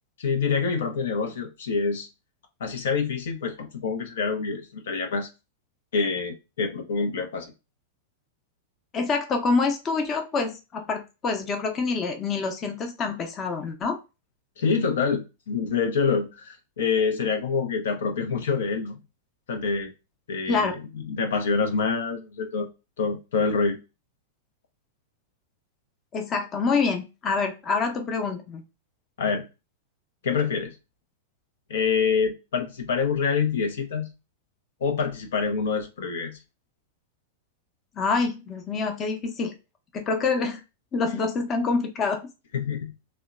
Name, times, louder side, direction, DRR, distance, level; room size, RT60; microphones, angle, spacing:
voice 1, 0.2-2.1 2.6-5.3 5.9-7.5 14.6-19.0 19.5-19.9 20.3-20.8 21.0-22.7 23.0-23.8 29.2-29.5 30.2-30.7 31.7-34.1 34.8-36.4 42.5-42.9, left 5 dB, 75° left, 0.5 m, -26 dB
voice 2, 8.9-14.0 20.5-20.8 26.1-28.6 38.0-39.5 39.9-40.6 40.9-42.3, left 4 dB, 30° left, 0.6 m, -26 dB
2.7 x 2.1 x 2.3 m
hypercardioid pair, 110°, 0 cm